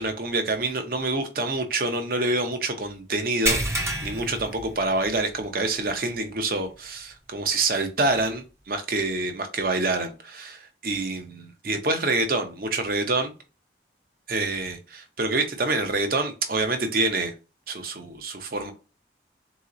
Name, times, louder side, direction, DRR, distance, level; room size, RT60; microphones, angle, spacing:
voice 1, 0.0-13.3 14.3-17.3 17.7-18.7, right 2 dB, 50° right, 0.8 m, -27 dB
sound 1, 3.5-5.3 5.7-5.9 6.4-6.5 8.1-8.2, right 1 dB, 15° right, 0.7 m, -28 dB
3.9 x 3.0 x 3.8 m
head